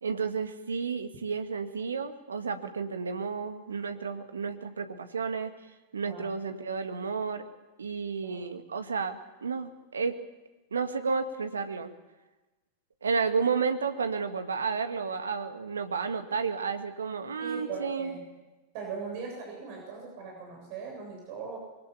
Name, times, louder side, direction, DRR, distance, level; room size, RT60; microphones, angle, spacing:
voice 1, 0.0-5.5 5.9-7.5 7.8-10.1 10.7-11.9 13.0-18.2, right 5 dB, 70° right, 8 dB, 2.0 m, -32 dB
voice 2, 17.4-18.2 18.7-21.6, right 5 dB, 45° right, 0 dB, 7.8 m, -39 dB
23.5 x 23.0 x 7.0 m, 1.1 s
figure-of-eight pair, 90°, 0 cm